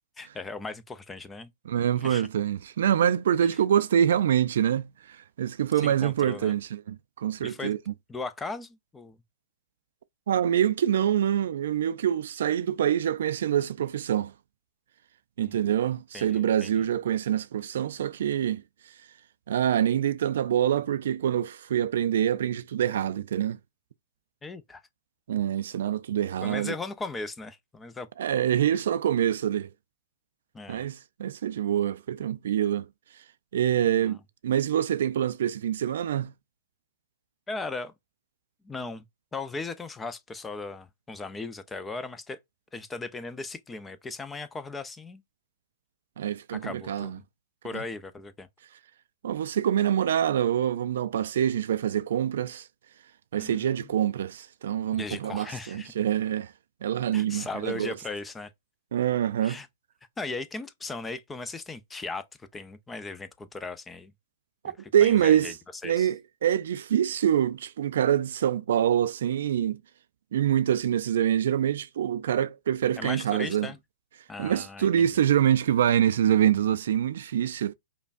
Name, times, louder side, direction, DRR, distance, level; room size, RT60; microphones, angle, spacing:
voice 1, 0.2-1.5 2.0-2.3 5.8-6.5 7.4-7.8 8.1-9.2 15.4-15.6 16.1-16.9 24.4-24.8 26.4-28.1 30.5-30.9 33.8-34.2 37.5-37.9 38.6-39.0 39.3-42.4 42.7-45.2 46.5-47.2 47.6-48.5 53.4-54.0 55.0-55.9 57.1-58.5 59.4-59.7 60.2-62.2 62.5-64.1 64.7-64.8 65.0-65.5 65.8-66.1 73.0-73.8 74.3-75.1, left 3 dB, 10° left, 0.5 m, -37 dB
voice 2, 1.7-7.8 10.3-14.3 15.4-18.6 19.5-23.6 25.3-26.7 28.2-29.7 30.7-32.8 33.5-34.2 34.4-36.3 46.2-47.2 49.2-52.6 53.3-56.5 56.8-57.9 58.9-59.6 64.6-65.5 65.8-69.8 70.3-73.7 74.4-77.7, right 10 dB, 65° right, 0.3 m, -25 dB
5.1 x 2.2 x 2.5 m
hypercardioid pair, 115°, 0 cm